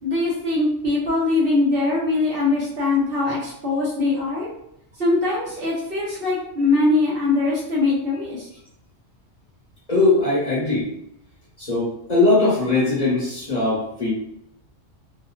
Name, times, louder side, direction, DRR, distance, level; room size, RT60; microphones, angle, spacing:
voice 1, 0.0-4.5 5.0-8.5, left 3 dB, 55° right, -6 dB, 1.0 m, -22 dB
voice 2, 9.9-10.9 11.6-14.1, left 2 dB, 40° left, -7 dB, 0.9 m, -20 dB
2.8 x 2.6 x 2.3 m, 0.77 s
omnidirectional pair, 1.2 m